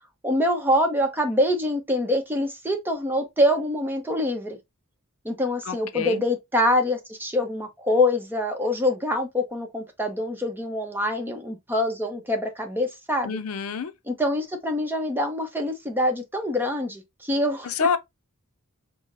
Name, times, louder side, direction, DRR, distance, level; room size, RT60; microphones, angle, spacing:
voice 1, 0.2-4.6 5.2-13.4 14.1-17.7, left 1 dB, 10° right, 0.7 m, -25 dB
voice 2, 5.7-6.2 13.2-13.9 17.6-18.0, left 5 dB, 75° left, 0.5 m, -27 dB
5.6 x 2.1 x 2.5 m
head